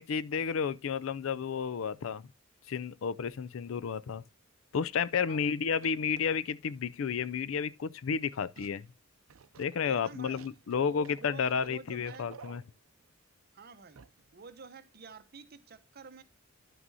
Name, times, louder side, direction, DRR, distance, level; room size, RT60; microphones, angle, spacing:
voice 1, 0.0-2.3 2.7-4.2 4.7-8.9 9.6-12.6, left 6 dB, 75° left, 0.4 m, -32 dB
sound 1, 3.8-4.1 4.7-4.8 5.7-6.4 8.5-8.9 9.3-13.1 13.9-14.3 14.6-14.7, right 6 dB, 85° right, 0.5 m, -54 dB
voice 2, 5.3-5.6 9.8-10.5 10.8-12.4 13.5-14.0 14.3-16.2, right 4 dB, 50° right, 0.8 m, -50 dB
11.0 x 6.1 x 2.7 m
head